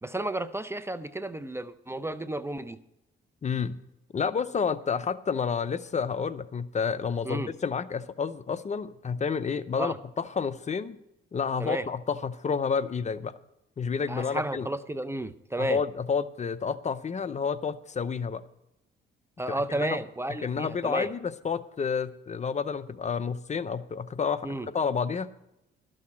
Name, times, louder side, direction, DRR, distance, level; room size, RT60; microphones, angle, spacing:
voice 1, 0.0-2.8 7.2-7.5 9.8-10.0 11.6-11.9 14.1-15.8 19.4-21.1 24.4-24.7, right 1 dB, 15° right, 12 dB, 0.6 m, -32 dB
voice 2, 3.4-3.8 4.1-11.0 11.3-13.3 13.8-14.7 15.6-18.4 19.5-20.0 20.4-25.3, left 6 dB, 35° left, 13 dB, 0.7 m, -30 dB
12.5 x 6.5 x 8.5 m, 0.90 s
cardioid pair, 90°, 20 cm